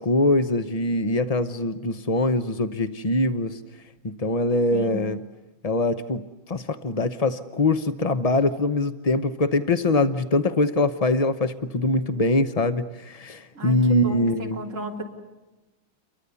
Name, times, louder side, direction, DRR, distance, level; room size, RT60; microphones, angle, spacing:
voice 1, 0.0-3.6 4.0-5.2 5.6-14.6, left 2 dB, 75° left, 10 dB, 0.3 m, -23 dB
voice 2, 4.7-5.0 13.5-15.0, right 1 dB, 35° right, 0 dB, 3.8 m, -34 dB
29.5 x 23.5 x 7.0 m, 1.1 s
omnidirectional pair, 2.3 m